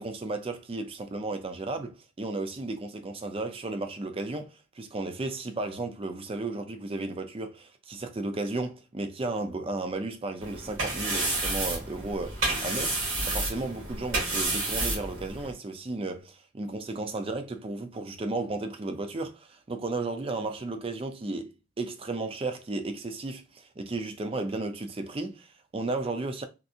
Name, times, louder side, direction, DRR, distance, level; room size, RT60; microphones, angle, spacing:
voice 1, 0.0-26.4, right 2 dB, 25° right, 0.4 m, -34 dB
sound 1, 10.4-15.5, right 2 dB, 65° right, 1.8 m, -30 dB
3.6 x 2.5 x 2.7 m
head